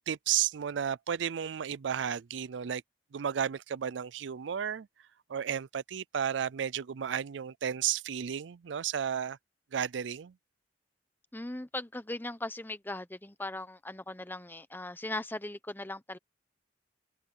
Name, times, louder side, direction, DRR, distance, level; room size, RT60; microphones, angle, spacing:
voice 1, 0.1-2.8 3.1-4.9 5.3-9.4 9.7-10.3, right 8 dB, 85° right, 0.4 m, -33 dB
voice 2, 11.3-16.2, left 2 dB, 10° left, 1.0 m, -39 dB
open air
head